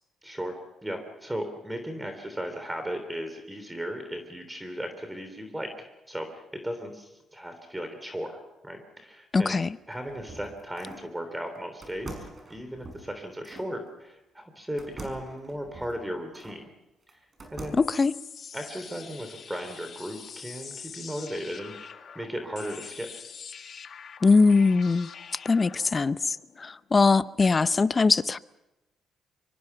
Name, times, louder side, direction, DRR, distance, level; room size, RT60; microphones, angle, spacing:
voice 1, 0.2-9.6 9.9-16.7 17.5-17.8 18.5-23.1, equal, 10° right, 3.4 m, -36 dB
voice 2, 9.3-9.7 17.7-18.2 24.2-25.1 25.4-28.4, left 4 dB, 30° left, 0.7 m, -22 dB
sound 1, 9.7-11.1 11.8-13.7 14.8-16.6 17.1-18.0, right 2 dB, 30° right, 5.9 m, -44 dB
sound 2, 17.8-27.5, left 7 dB, 50° left, 1.6 m, -45 dB
24.5 x 24.5 x 5.9 m
cardioid pair, 90°, 0 cm